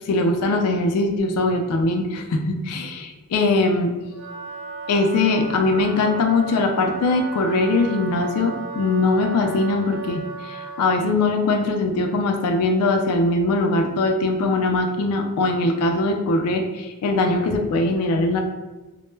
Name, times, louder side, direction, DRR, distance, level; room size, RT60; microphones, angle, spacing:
voice 1, 0.1-4.0 4.9-18.4, left 2 dB, 85° left, 4 dB, 0.3 m, -21 dB
Wind instrument woodwind instrument, 4.1-11.1, right 4 dB, 85° right, 0.8 m, -35 dB
2.1 x 2.0 x 3.1 m, 1.1 s
head